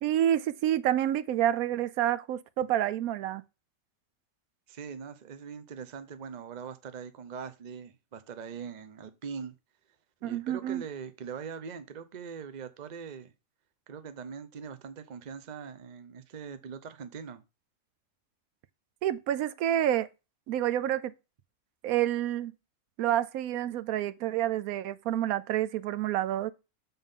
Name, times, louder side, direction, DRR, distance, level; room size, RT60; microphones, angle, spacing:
voice 1, 0.0-3.4 10.2-10.8 19.0-20.1 20.5-21.1 21.8-22.5 23.0-26.5, right 12 dB, 85° right, 1.0 m, -28 dB
voice 2, 4.7-9.5 10.2-13.3 13.9-17.4, right 6 dB, 40° right, 0.7 m, -42 dB
7.1 x 3.8 x 5.4 m
omnidirectional pair, 1.5 m